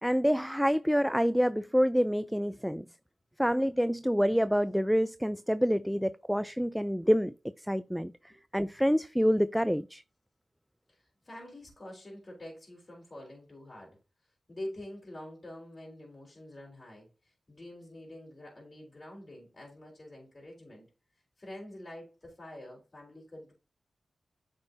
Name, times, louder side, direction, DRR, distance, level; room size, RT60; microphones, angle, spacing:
voice 1, 0.0-2.9 3.4-7.3 7.7-8.1 8.5-10.0, equal, ahead, 0.4 m, -27 dB
voice 2, 10.9-14.0 14.5-20.9 21.4-23.5, left 1 dB, 40° left, 3.6 m, -46 dB
8.6 x 5.4 x 2.7 m
cardioid pair, 40°, 0 cm